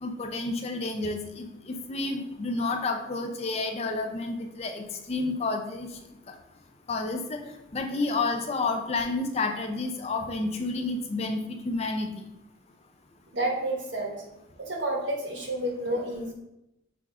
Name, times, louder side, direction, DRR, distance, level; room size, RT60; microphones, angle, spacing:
voice 1, 0.0-5.9 6.9-7.4 7.7-12.1, left 3 dB, 35° left, 4 dB, 0.4 m, -30 dB
voice 2, 13.3-14.2 14.6-16.3, right 1 dB, 65° right, 1 dB, 1.0 m, -30 dB
5.9 x 2.4 x 3.6 m, 0.88 s
head